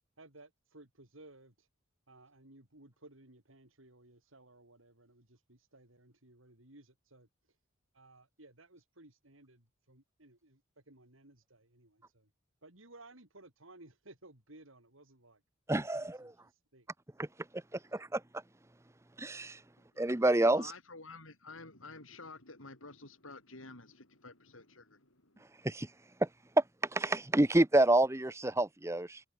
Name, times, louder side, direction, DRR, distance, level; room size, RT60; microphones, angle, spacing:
voice 1, 0.2-1.7 2.1-7.3 7.9-12.3 12.6-15.4 15.9-16.9 17.8-18.0, right 2 dB, 85° right, 4.8 m, -58 dB
voice 2, 15.7-16.3 17.2-17.3 17.9-18.2 19.2-19.6 20.0-20.6 25.6-25.9 26.9-29.2, right 1 dB, 15° right, 0.8 m, -28 dB
voice 3, 20.4-25.4, left 3 dB, 85° left, 7.3 m, -50 dB
head